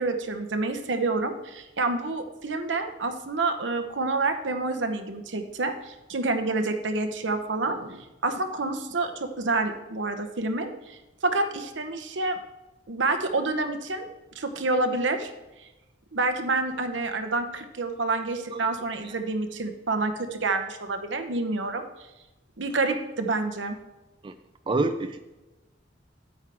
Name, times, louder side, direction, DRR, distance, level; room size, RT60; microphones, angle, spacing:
voice 1, 0.0-12.4 12.9-14.1 14.3-15.3 16.1-21.9 22.6-23.8, right 3 dB, 75° right, 7 dB, 0.9 m, -28 dB
voice 2, 24.7-25.2, right 2 dB, 25° right, 8 dB, 0.4 m, -27 dB
9.1 x 8.8 x 3.5 m, 1.0 s
head